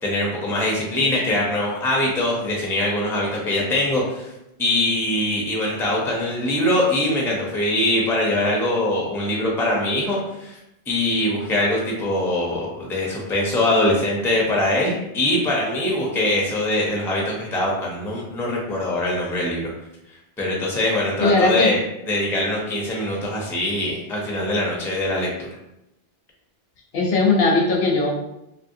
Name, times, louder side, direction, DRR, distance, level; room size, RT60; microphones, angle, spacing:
voice 1, 0.0-4.3 4.6-10.6 10.9-19.7 20.4-21.8 22.1-25.5, left 1 dB, 5° left, -3 dB, 0.5 m, -22 dB
voice 2, 21.2-21.7 26.9-28.1, left 3 dB, 70° left, -1 dB, 0.9 m, -18 dB
3.0 x 2.6 x 2.6 m, 0.85 s
omnidirectional pair, 1.0 m